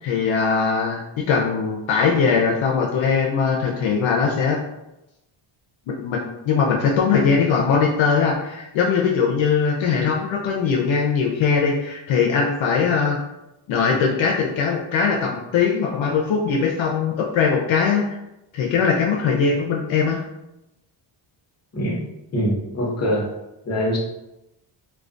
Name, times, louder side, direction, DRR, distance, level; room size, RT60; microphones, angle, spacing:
voice 1, 0.0-4.6 5.9-13.2 13.7-18.2 18.5-20.2, left 5 dB, 70° left, -1 dB, 0.5 m, -21 dB
voice 2, 21.7-23.3 23.6-24.0, equal, 30° left, -2 dB, 0.8 m, -24 dB
2.3 x 2.2 x 2.4 m, 0.91 s
cardioid pair, 105°, 48 cm